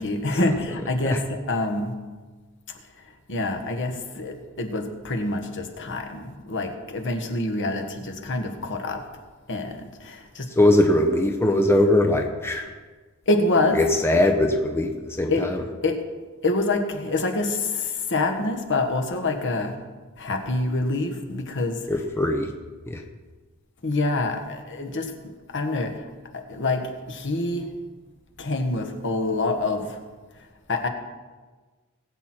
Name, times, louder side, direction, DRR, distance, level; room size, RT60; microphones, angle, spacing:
voice 1, 0.0-1.9 3.0-9.0 9.5-10.5 13.3-13.8 15.3-15.5 15.8-16.0 16.4-19.7 20.2-21.8 23.8-25.1 25.5-26.1 26.3-27.7 28.4-30.0 30.7-30.9, left 2 dB, 55° left, 4 dB, 1.6 m, -26 dB
voice 2, 10.6-12.7 13.7-15.6 21.9-22.5 22.9-23.0, left 1 dB, 10° left, 3 dB, 1.0 m, -21 dB
20.0 x 8.2 x 4.5 m, 1.4 s
head